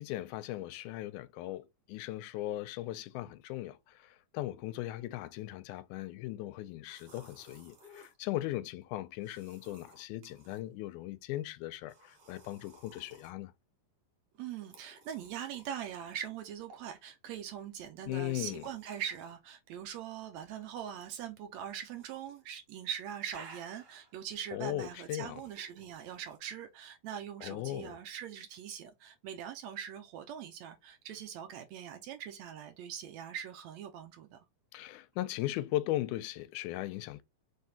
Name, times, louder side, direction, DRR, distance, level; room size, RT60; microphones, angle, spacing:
voice 1, 0.0-13.5 18.1-18.6 24.5-25.4 27.4-28.0 34.7-37.2, left 15 dB, 85° left, 2.0 m, -38 dB
sound 1, 6.8-8.2 9.2-10.6 11.9-13.3 14.4-15.8 16.7-17.0 18.2-19.4 20.3-20.9 21.9-22.4 22.7-24.2 25.3-26.4, right 2 dB, 55° right, 2.7 m, -57 dB
voice 2, 14.4-34.4, right 9 dB, 75° right, 1.7 m, -42 dB
4.8 x 3.5 x 2.7 m
omnidirectional pair, 3.6 m